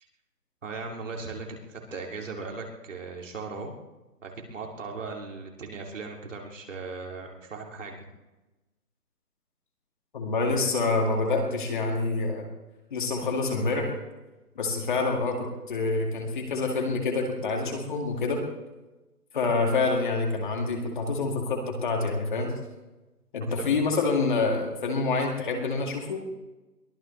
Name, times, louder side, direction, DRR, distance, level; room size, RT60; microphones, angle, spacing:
voice 1, 0.6-3.7 4.2-8.0 23.6-23.7, right 4 dB, 50° right, 1 dB, 2.8 m, -38 dB
voice 2, 10.1-12.4 12.9-13.9 14.6-18.4 19.3-22.5 23.3-26.2, left 3 dB, 30° left, 1 dB, 2.2 m, -27 dB
23.0 x 16.5 x 3.3 m, 1.1 s
hypercardioid pair, 165°, 48 cm